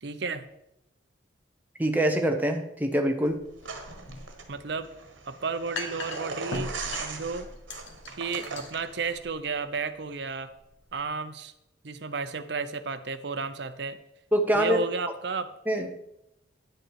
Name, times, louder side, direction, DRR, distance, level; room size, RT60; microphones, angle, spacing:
voice 1, 0.0-0.5 4.5-4.9 5.3-6.7 7.0-7.5 8.2-10.5 10.9-11.5 11.8-14.0 14.5-15.5, right 4 dB, 60° right, 12 dB, 0.6 m, -32 dB
voice 2, 1.8-3.4 14.3-14.8 15.7-15.9, right 1 dB, 10° right, 4 dB, 0.8 m, -24 dB
sound 1, 3.3-11.0, left 2 dB, 80° left, 1.3 m, -41 dB
sound 2, 3.6-9.1, right 4 dB, 75° right, 1.4 m, -39 dB
10.0 x 7.7 x 4.6 m, 0.83 s
head